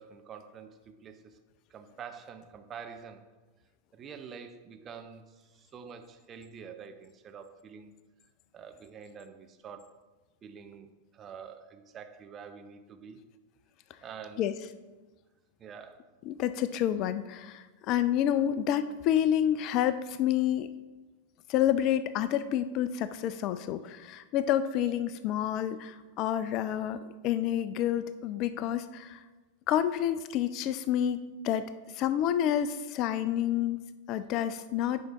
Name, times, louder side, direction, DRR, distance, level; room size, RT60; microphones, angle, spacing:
voice 1, 0.0-1.3 1.7-3.2 3.9-7.9 8.5-10.0 10.4-13.2 14.0-14.6 15.6-16.0, right 6 dB, 25° right, 7 dB, 0.6 m, -47 dB
voice 2, 16.2-20.7 21.5-29.2 29.7-33.8 34.1-35.0, left 10 dB, 40° left, 13 dB, 0.3 m, -29 dB
10.5 x 5.4 x 3.0 m, 1.2 s
figure-of-eight pair, 90°, 0 cm